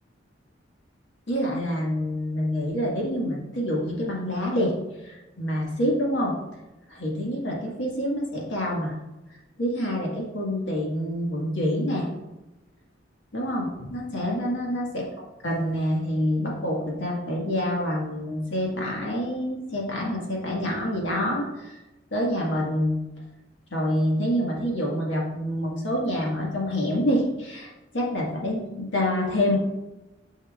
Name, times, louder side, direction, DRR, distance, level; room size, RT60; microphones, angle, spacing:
voice 1, 1.3-4.7 5.0-6.3 6.9-9.0 9.6-12.1 13.3-14.8 15.4-21.8 22.1-23.0 23.7-29.6, equal, 70° left, -3 dB, 1.7 m, -27 dB
8.5 x 5.5 x 2.4 m, 1.0 s
head